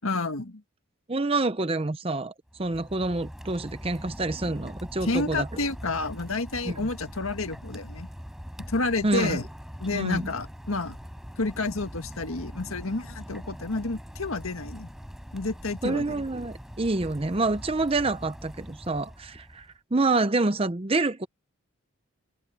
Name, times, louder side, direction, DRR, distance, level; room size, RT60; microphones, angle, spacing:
voice 1, 0.0-0.6 5.0-8.1 8.7-9.4 9.8-11.0 11.4-14.9 15.3-16.2, left 3 dB, 85° left, 1.8 m, -30 dB
voice 2, 1.1-2.3 2.6-5.5 6.7-6.8 9.0-9.4 9.9-10.3 15.8-21.3, right 2 dB, 25° right, 0.7 m, -27 dB
Rain, 2.5-19.8, equal, ahead, 5.3 m, -42 dB
head